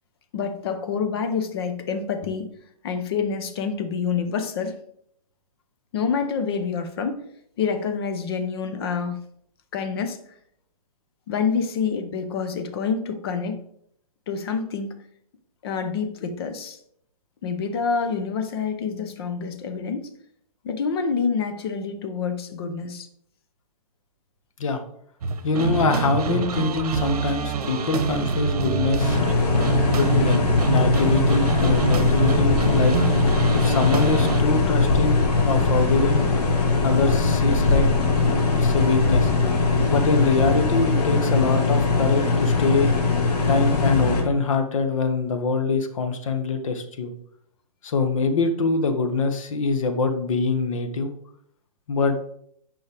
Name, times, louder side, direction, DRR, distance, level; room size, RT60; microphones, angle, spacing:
voice 1, 0.3-2.5 2.8-4.8 5.9-7.2 7.6-9.2 9.7-10.2 11.3-13.6 14.3-14.9 15.6-16.8 17.4-20.1 20.6-23.1, left 5 dB, 40° left, 7 dB, 0.9 m, -27 dB
sound 1, 25.2-34.4, right 6 dB, 70° right, 1.0 m, -26 dB
voice 2, 25.4-29.2 29.9-32.9 33.5-36.3 36.8-37.9 38.5-39.3 39.9-42.9 43.4-47.1 47.8-51.1 51.9-52.2, left 4 dB, 55° left, 7 dB, 1.2 m, -24 dB
sound 2, 29.0-44.2, left 3 dB, 85° left, 2.0 m, -21 dB
8.3 x 5.5 x 3.5 m, 0.69 s
hypercardioid pair, 170°, 20 cm